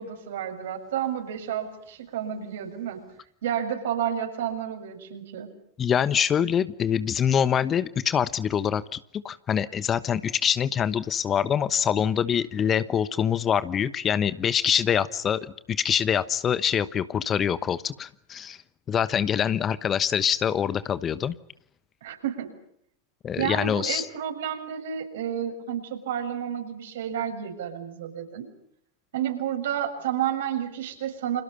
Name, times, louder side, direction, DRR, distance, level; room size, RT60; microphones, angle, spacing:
voice 1, 0.0-3.0 3.4-5.5 22.0-22.5 23.4-28.5 29.1-31.4, right 9 dB, 60° right, 5 dB, 6.8 m, -30 dB
voice 2, 5.8-18.6 18.9-21.3 23.2-24.1, left 8 dB, 25° left, 15 dB, 1.1 m, -25 dB
30.0 x 27.5 x 5.7 m, 0.70 s
figure-of-eight pair, 90°, 0 cm